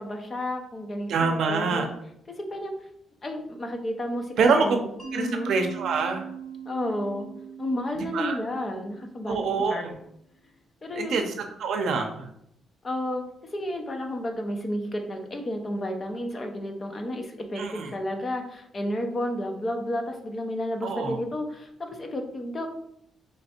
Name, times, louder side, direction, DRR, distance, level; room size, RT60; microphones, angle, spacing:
voice 1, 0.0-1.9 2.3-2.7 3.2-4.8 5.1-5.5 6.7-7.3 7.6-9.9 10.8-11.2 12.8-13.2 13.5-22.7, left 1 dB, 25° left, 4 dB, 0.6 m, -31 dB
voice 2, 1.1-1.9 4.4-4.8 5.1-6.3 8.0-8.4 9.3-9.9 11.0-11.2 11.6-12.3 17.6-17.9 20.8-21.2, right 4 dB, 65° right, 5 dB, 0.6 m, -25 dB
Mallet percussion, 5.0-9.8, right 8 dB, 10° left, 1.0 m, -41 dB
3.3 x 3.2 x 4.3 m, 0.75 s
cardioid pair, 160°, 0 cm